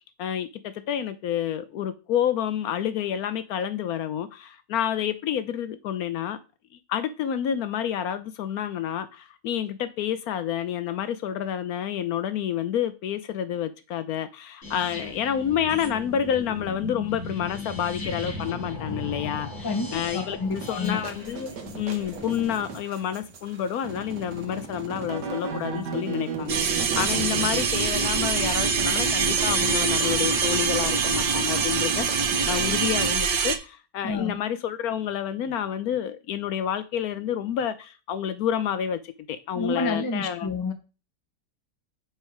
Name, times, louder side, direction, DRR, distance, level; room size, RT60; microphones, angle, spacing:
voice 1, 0.2-6.4 6.9-19.7 19.9-40.5, left 9 dB, 70° left, 1.0 m, -29 dB
sound 1, 14.6-22.5, left 2 dB, 40° left, 3.0 m, -37 dB
voice 2, 19.6-21.0 34.0-34.4 39.5-40.7, left 3 dB, 20° left, 0.5 m, -29 dB
sound 2, 20.5-33.1, right 3 dB, 85° right, 1.8 m, -33 dB
sound 3, 26.5-33.6, right 6 dB, 50° right, 0.8 m, -25 dB
6.0 x 4.4 x 4.9 m
omnidirectional pair, 1.8 m